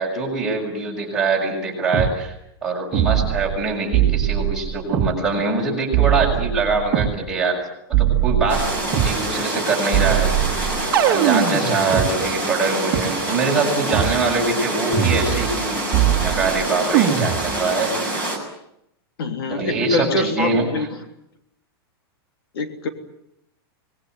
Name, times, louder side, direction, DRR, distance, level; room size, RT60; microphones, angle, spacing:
voice 1, 0.0-2.3 2.6-7.6 7.9-8.7 9.0-10.3 11.1-15.8 16.2-17.9 19.5-20.9, right 3 dB, 5° right, -4 dB, 6.8 m, -23 dB
sound 1, 1.9-2.1 2.9-3.6 3.9-5.1 5.9-7.1 7.9-9.2 9.9-12.1 12.9-13.0 13.9-14.2 14.9-15.6 15.9-16.6 16.9-17.6, right 10 dB, 20° right, 2.6 m, -20 dB
sound 2, 8.5-18.4, right 2 dB, 15° left, 6.5 m, -26 dB
voice 2, 11.3-11.7 19.2-20.9 22.5-22.9, left 3 dB, 65° left, 7 dB, 3.3 m, -25 dB
26.0 x 21.0 x 9.4 m, 0.80 s
supercardioid pair, 180°, 13 cm